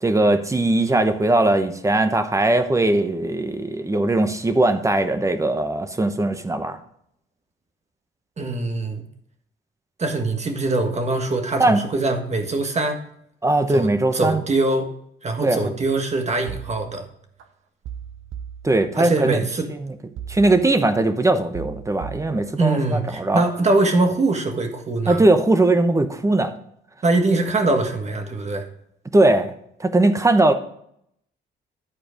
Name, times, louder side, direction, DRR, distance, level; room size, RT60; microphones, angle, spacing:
voice 1, 0.0-6.8 11.6-11.8 13.4-14.4 15.4-15.6 18.6-19.4 19.8-19.9 20.3-23.4 25.1-26.5 29.1-29.5 29.8-30.5, right 2 dB, 15° right, 9 dB, 0.9 m, -19 dB
voice 2, 8.4-9.0 10.0-13.0 13.7-14.9 15.2-17.0 19.0-19.7 22.6-25.2 27.0-28.6, right 2 dB, 35° right, 5 dB, 1.5 m, -22 dB
sound 1, 16.5-17.4 17.8-19.3 20.2-21.1 21.5-23.0 23.4-23.8, right 8 dB, 80° right, 0.8 m, -38 dB
11.0 x 4.4 x 5.1 m, 0.72 s
cardioid pair, 90°, 20 cm